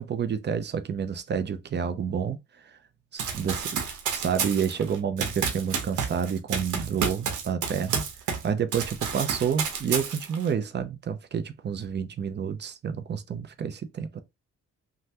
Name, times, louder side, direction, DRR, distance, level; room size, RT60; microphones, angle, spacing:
voice 1, 0.0-2.4 3.1-3.8 4.1-8.0 8.4-14.2, right 7 dB, 35° right, 0.5 m, -29 dB
Run, 3.2-8.5 8.7-10.5, right 6 dB, 80° right, 0.9 m, -30 dB
3.2 x 2.2 x 2.8 m
cardioid pair, 90°, 30 cm